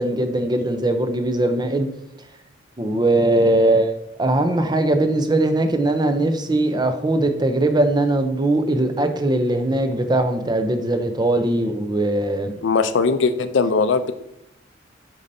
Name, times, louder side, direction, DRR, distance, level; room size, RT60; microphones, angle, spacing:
voice 1, 0.0-1.9 2.8-3.9 4.2-12.5, right 1 dB, 20° right, 7 dB, 0.5 m, -20 dB
voice 2, 12.6-14.1, left 4 dB, 60° left, 10 dB, 0.5 m, -19 dB
8.5 x 5.4 x 2.7 m, 0.83 s
head